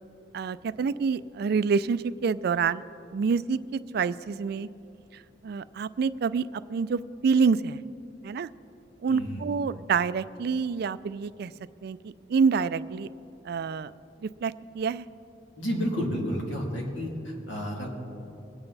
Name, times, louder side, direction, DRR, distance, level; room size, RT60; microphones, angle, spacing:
voice 1, 0.3-2.8 3.1-4.7 5.4-7.8 8.2-8.5 9.0-11.5 11.8-13.1 13.4-13.9 14.2-15.1, right 5 dB, 55° right, 16 dB, 0.3 m, -27 dB
voice 2, 9.1-9.5 15.6-17.9, equal, 90° left, -1 dB, 2.7 m, -31 dB
22.0 x 8.9 x 4.0 m, 2.8 s
head